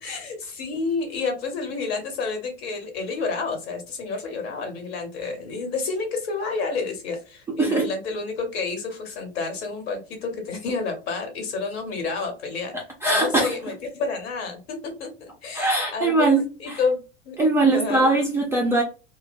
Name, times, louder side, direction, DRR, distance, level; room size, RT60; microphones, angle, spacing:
voice 1, 0.0-12.7 13.1-17.4 17.7-18.1, left 4 dB, 55° left, 4 dB, 1.1 m, -30 dB
voice 2, 12.7-13.5 15.5-16.8 17.4-18.8, right 2 dB, 10° right, -2 dB, 0.3 m, -21 dB
2.8 x 2.1 x 2.6 m, 0.32 s
figure-of-eight pair, 85°, 37 cm